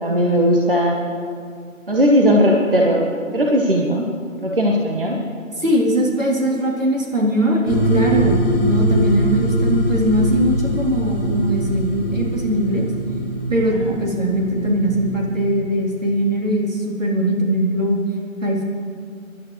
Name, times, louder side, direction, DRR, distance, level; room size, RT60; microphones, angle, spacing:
voice 1, 0.0-1.0 1.9-3.0 3.3-4.1 4.4-5.2 13.7-14.0, equal, 40° right, -1 dB, 1.1 m, -17 dB
voice 2, 5.6-12.9 13.5-18.0 18.4-18.6, right 1 dB, 70° right, -2 dB, 3.4 m, -20 dB
sound 1, 7.7-15.3, equal, 30° left, 1.8 m, -22 dB
24.0 x 11.5 x 3.2 m, 2.2 s
figure-of-eight pair, 170°, 41 cm